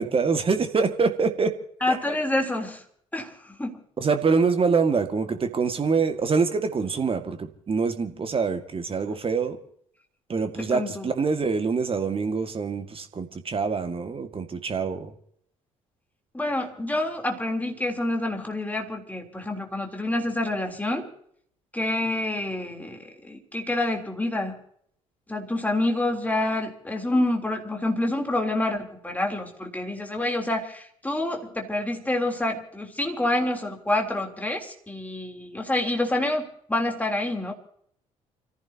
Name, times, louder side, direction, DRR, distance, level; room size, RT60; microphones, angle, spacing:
voice 1, 0.0-1.6 4.0-9.6 10.3-15.1, right 5 dB, 30° right, 7 dB, 2.0 m, -25 dB
voice 2, 1.8-2.8 3.1-3.8 10.6-11.1 16.3-21.1 21.7-24.6 25.3-37.5, left 1 dB, 10° left, 1 dB, 3.5 m, -27 dB
29.5 x 15.0 x 2.9 m, 0.66 s
figure-of-eight pair, 50°, 17 cm